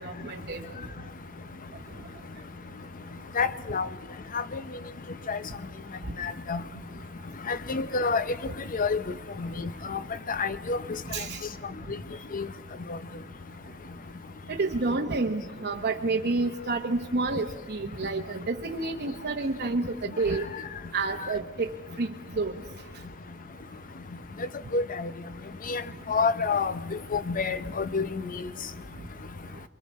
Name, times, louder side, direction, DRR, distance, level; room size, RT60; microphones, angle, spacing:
voice 1, 0.0-0.6 11.1-11.4 14.5-20.4 20.9-21.7 22.0-22.1 22.4-22.5, right 3 dB, 50° right, 2 dB, 0.9 m, -29 dB
voice 2, 3.4-3.9 4.3-4.4 5.3-5.4 6.2-6.6 7.5-8.2 8.7-9.0 9.4-9.5 9.9-10.0 10.3-10.8 12.3-12.5 24.7-25.1 25.7-25.8 26.1-28.1, left 4 dB, 40° left, 13 dB, 0.7 m, -27 dB
28.5 x 23.5 x 4.2 m, 1.4 s
head